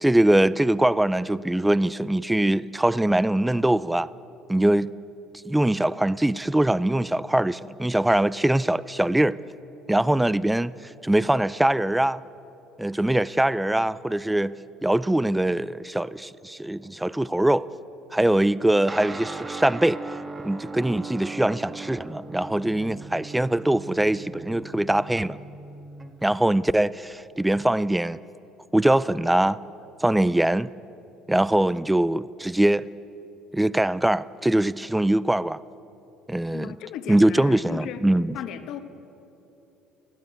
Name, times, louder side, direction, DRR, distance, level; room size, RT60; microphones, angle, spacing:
voice 1, 0.0-4.1 4.5-4.9 5.4-9.4 9.9-12.2 12.8-14.6 14.8-17.7 18.1-20.0 20.4-25.4 26.2-28.2 28.7-29.6 30.0-30.7 31.3-32.9 33.5-35.6 36.3-36.7 37.1-38.4, right 1 dB, 5° right, 0.4 m, -22 dB
Guitar, 18.9-26.6, right 3 dB, 20° right, 1.5 m, -38 dB
voice 2, 36.5-38.0 38.3-38.8, left 9 dB, 65° left, 1.3 m, -36 dB
19.5 x 14.5 x 9.4 m
cardioid pair, 110°, 0 cm